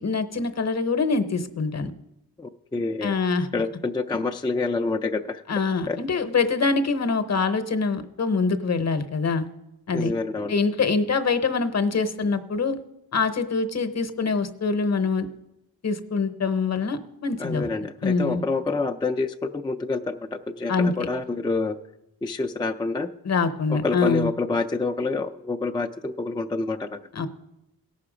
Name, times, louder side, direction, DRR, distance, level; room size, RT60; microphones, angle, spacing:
voice 1, 0.0-1.9 3.0-3.5 5.5-9.5 9.9-10.1 10.5-12.8 13.1-15.3 15.8-17.7 18.0-18.4 20.7-21.1 23.2-24.3 27.1-27.3, left 4 dB, 45° left, 10 dB, 0.8 m, -24 dB
voice 2, 2.4-3.2 3.5-5.4 5.9-6.0 9.9-10.5 17.4-21.8 22.2-23.1 23.7-27.0, left 3 dB, 15° left, 4 dB, 0.3 m, -27 dB
17.0 x 5.8 x 5.0 m, 0.89 s
wide cardioid pair, 105°, 38 cm